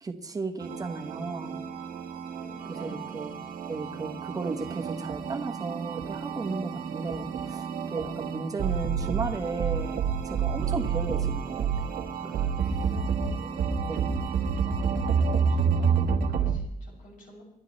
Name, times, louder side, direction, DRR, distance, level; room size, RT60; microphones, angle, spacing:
voice 1, 0.0-1.6 2.6-3.3 3.7-12.5 13.9-14.2, right 3 dB, 25° right, 3 dB, 1.3 m, -35 dB
sound 1, 0.6-16.6, right 6 dB, 80° right, 1.5 m, -29 dB
voice 2, 2.3-3.1 12.8-14.2 14.6-17.4, equal, 70° left, -2 dB, 7.1 m, -48 dB
28.5 x 11.0 x 3.2 m, 0.79 s
cardioid pair, 150°, 14 cm